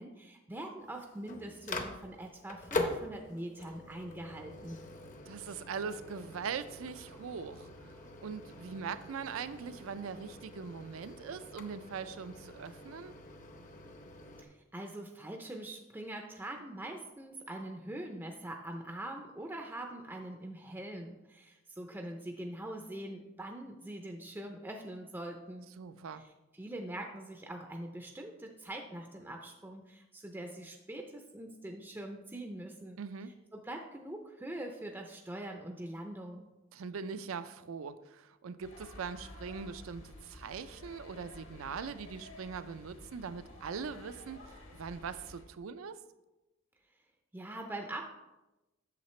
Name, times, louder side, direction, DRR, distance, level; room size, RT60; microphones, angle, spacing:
voice 1, 0.0-4.9 14.4-25.7 26.1-33.0 33.2-36.5 47.3-48.0, right 1 dB, 10° right, 3 dB, 0.4 m, -43 dB
Microwave oven, 0.8-14.5, left 2 dB, 40° left, 0.7 m, -43 dB
voice 2, 5.3-7.9 8.2-13.1 25.8-26.2 33.0-33.3 36.7-46.0, right 6 dB, 80° right, 12 dB, 0.4 m, -41 dB
sound 1, 38.6-45.4, left 1 dB, 70° left, 1.3 m, -52 dB
8.5 x 6.6 x 3.2 m, 1.0 s
head